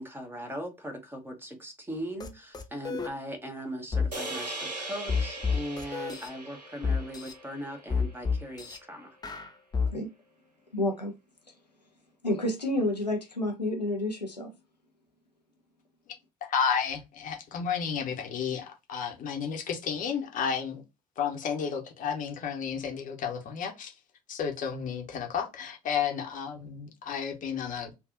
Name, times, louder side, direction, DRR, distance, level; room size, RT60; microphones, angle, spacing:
voice 1, 0.0-9.1, equal, 10° right, 1.0 m, -39 dB
sound 1, 2.2-2.3 2.5-3.1 3.9-4.1 5.1-6.3 6.8-7.3 7.9-8.8 9.2-9.9, left 5 dB, 20° left, 0.6 m, -29 dB
sound 2, 4.1-8.5, right 2 dB, 90° right, 0.6 m, -40 dB
voice 2, 10.7-11.1 12.2-14.5, left 1 dB, 90° left, 0.6 m, -29 dB
voice 3, 16.5-20.8 21.2-23.9 24.3-27.9, left 7 dB, 40° left, 0.9 m, -32 dB
3.4 x 2.4 x 2.5 m
figure-of-eight pair, 60°, 20 cm